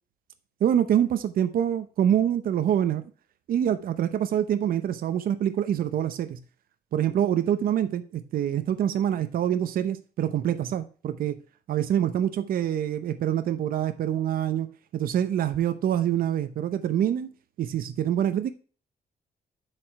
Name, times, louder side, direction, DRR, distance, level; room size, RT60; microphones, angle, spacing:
voice 1, 0.6-3.0 3.5-6.4 6.9-11.4 11.7-14.7 14.9-17.3 17.6-18.5, right 10 dB, 65° right, 0.8 m, -25 dB
7.6 x 5.0 x 4.4 m
cardioid pair, 140°, 16 cm